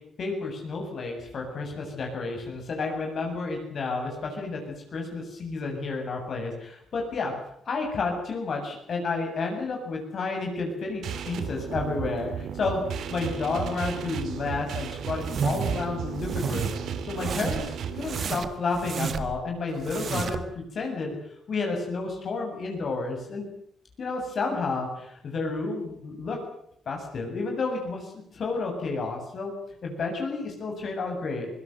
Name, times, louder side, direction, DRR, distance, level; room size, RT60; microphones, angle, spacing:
voice 1, 0.2-7.3 7.7-12.8 13.1-21.1 21.5-23.5 24.0-26.4 26.9-29.5 29.8-31.5, left 3 dB, 55° left, 1 dB, 7.7 m, -31 dB
sound 1, 11.0-18.4, right 7 dB, 70° right, 3.2 m, -34 dB
sound 2, 15.2-15.8 16.2-16.8 17.2-17.7 18.0-19.4 19.8-20.5, right 6 dB, 50° right, 1.9 m, -31 dB
23.0 x 17.5 x 9.4 m, 0.70 s
cardioid pair, 90°, 0 cm